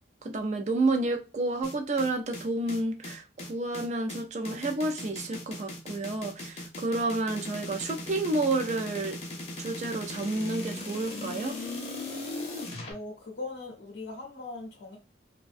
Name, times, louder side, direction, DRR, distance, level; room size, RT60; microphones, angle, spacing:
voice 1, 0.2-9.2 9.6-11.6, right 2 dB, 40° right, 0.4 m, -30 dB
sound 1, 1.6-12.9, left 1 dB, 35° left, 0.6 m, -38 dB
voice 2, 12.9-15.0, left 3 dB, 80° left, 0.6 m, -40 dB
2.5 x 2.1 x 2.4 m
head